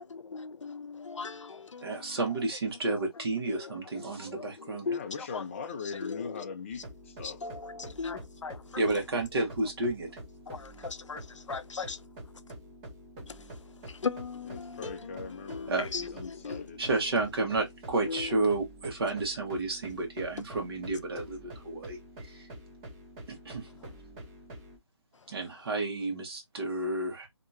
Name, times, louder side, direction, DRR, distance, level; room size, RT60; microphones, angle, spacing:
voice 1, 0.0-2.2 3.5-5.4 6.0-6.4 7.2-8.6 10.5-10.7 11.5-12.0 13.3-13.4 13.9-16.6 18.1-18.3, left 5 dB, 85° left, 0.5 m, -38 dB
voice 2, 1.8-4.9 8.7-10.1 15.7-15.9 16.8-22.5 23.3-23.7 25.3-27.3, right 2 dB, 55° right, 1.2 m, -31 dB
voice 3, 4.8-7.4 14.5-15.7 16.0-17.2, left 5 dB, 25° left, 0.4 m, -41 dB
sound 1, 6.7-24.8, right 1 dB, 15° right, 0.7 m, -47 dB
2.8 x 2.3 x 2.6 m
figure-of-eight pair, 155°, 15 cm